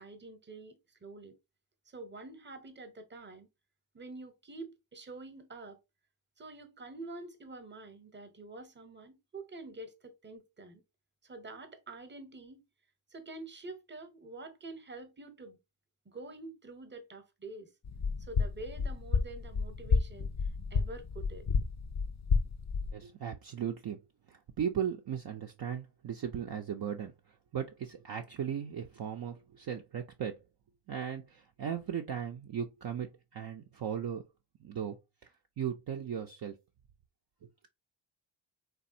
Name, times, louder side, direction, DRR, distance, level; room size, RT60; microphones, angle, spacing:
voice 1, 0.0-1.3 1.9-3.5 3.9-5.8 6.4-10.8 11.2-12.6 13.1-15.6 16.1-17.7 18.2-20.3 20.7-21.5, right 2 dB, 25° right, 0.8 m, -47 dB
sound 1, 17.8-22.9, left 5 dB, 35° left, 0.5 m, -31 dB
voice 2, 22.9-24.0 24.3-27.1 27.5-30.4 30.9-33.1 33.3-34.2 34.6-35.0 35.6-36.6 37.4-37.7, right 8 dB, 50° right, 0.5 m, -37 dB
3.2 x 2.3 x 2.6 m
cardioid pair, 50°, 48 cm